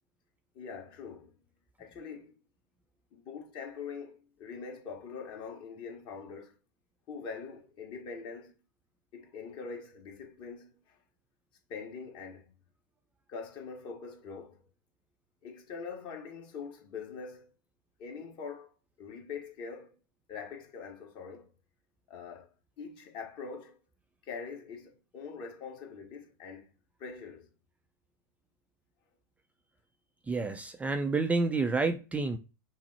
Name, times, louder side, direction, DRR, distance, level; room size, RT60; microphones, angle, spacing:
voice 1, 0.5-1.3 1.8-2.3 3.1-6.6 7.1-8.6 9.1-11.0 11.7-12.5 13.3-14.6 15.4-17.5 18.0-18.7 19.0-19.9 20.3-21.5 22.1-22.5 22.8-23.8 24.2-26.7 27.0-27.5, left 5 dB, 45° left, 1.5 m, -43 dB
voice 2, 30.3-32.4, right 3 dB, 10° right, 0.4 m, -29 dB
5.9 x 2.0 x 4.2 m
hypercardioid pair, 115°, 12 cm